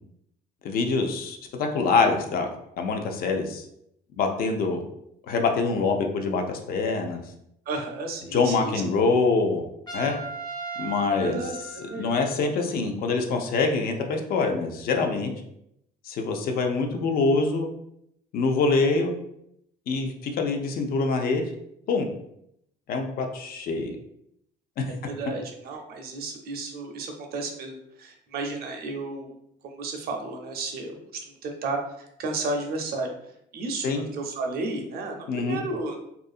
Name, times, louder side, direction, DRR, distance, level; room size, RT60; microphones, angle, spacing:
voice 1, 0.6-2.5 2.8-3.6 4.2-4.8 5.3-7.2 8.3-9.6 9.9-10.1 10.8-11.4 11.8-15.3 16.0-17.7 18.3-19.1 19.9-21.5 21.9-22.1 22.9-24.0 24.8-24.9 33.8-34.0 35.3-35.6, left 4 dB, 60° left, 4 dB, 0.5 m, -25 dB
voice 2, 7.7-8.8 11.2-12.1 25.0-29.3 29.6-31.0 31.3-33.1 33.5-36.0, right 2 dB, 65° right, 3 dB, 0.6 m, -33 dB
Trumpet, 9.9-12.5, right 5 dB, 25° left, 0.8 m, -37 dB
2.7 x 2.5 x 2.4 m, 0.76 s
cardioid pair, 110°, 17 cm